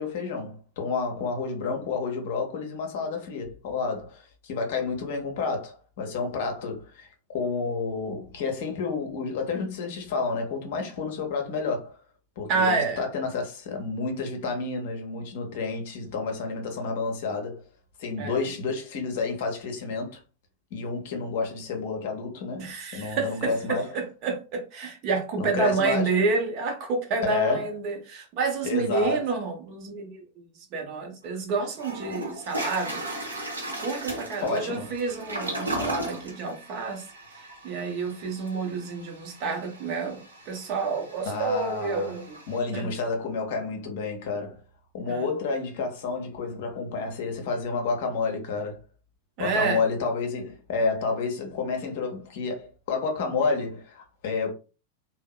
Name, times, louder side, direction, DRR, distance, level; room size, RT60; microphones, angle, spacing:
voice 1, 0.0-12.0 12.4-17.6 18.0-20.2 20.7-24.0 25.4-26.1 27.2-27.7 28.6-29.3 34.4-34.9 41.2-42.2 42.5-44.6 44.9-48.8 49.4-54.5, left 4 dB, 50° left, 0.7 m, -30 dB
voice 2, 12.5-13.1 18.2-18.4 22.6-30.4 30.7-37.1 37.3-42.4 42.7-42.9 45.0-45.3 49.4-49.8, right 4 dB, 40° right, 0.7 m, -29 dB
Toilet flush, 31.2-31.3 31.8-42.6, right 1 dB, 80° right, 0.8 m, -37 dB
2.7 x 2.0 x 2.2 m
figure-of-eight pair, 90°, 0 cm